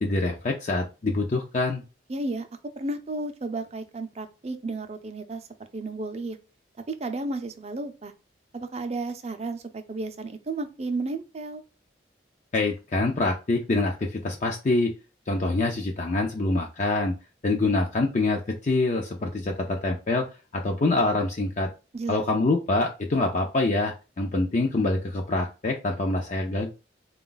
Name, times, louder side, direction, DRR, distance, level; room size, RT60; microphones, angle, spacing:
voice 1, 0.0-1.8 12.5-14.9 15.3-17.1 17.4-20.2 20.5-21.7 22.1-26.7, left 2 dB, 40° left, 1 dB, 0.5 m, -25 dB
voice 2, 2.1-2.5 2.8-5.4 5.7-6.4 6.9-8.1 8.5-11.6 21.9-22.2, right 2 dB, 35° right, 8 dB, 0.5 m, -33 dB
4.0 x 2.3 x 3.8 m, 0.31 s
head